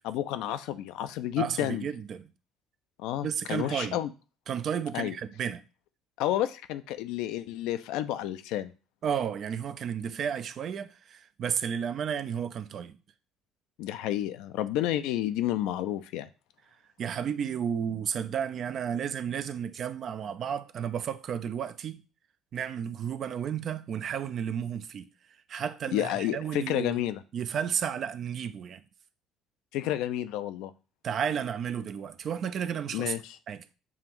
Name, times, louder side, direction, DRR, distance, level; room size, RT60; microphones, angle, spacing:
voice 1, 0.0-1.9 3.0-4.1 4.9-5.1 6.2-8.7 13.8-16.3 25.9-27.2 29.7-30.7 32.9-33.2, left 13 dB, 65° left, 0.4 m, -30 dB
voice 2, 1.4-2.3 3.2-4.0 4.5-5.6 9.0-13.0 17.0-22.0 22.5-25.1 25.5-27.1 27.3-28.8 31.0-33.2 33.5-33.6, right 8 dB, 50° right, 0.4 m, -32 dB
7.1 x 2.5 x 3.0 m
hypercardioid pair, 55°, 0 cm